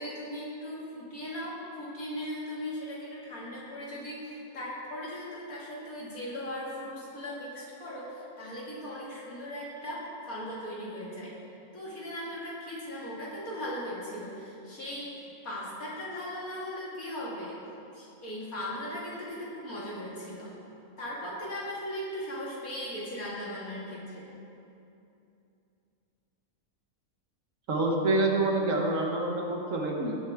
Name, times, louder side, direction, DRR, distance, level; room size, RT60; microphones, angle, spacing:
voice 1, 0.0-11.3 11.7-17.6 17.9-20.5 21.0-24.2, equal, 65° left, -6 dB, 2.9 m, -38 dB
voice 2, 27.7-30.2, right 2 dB, 60° right, 0 dB, 1.6 m, -27 dB
17.5 x 8.0 x 3.6 m, 2.7 s
omnidirectional pair, 1.6 m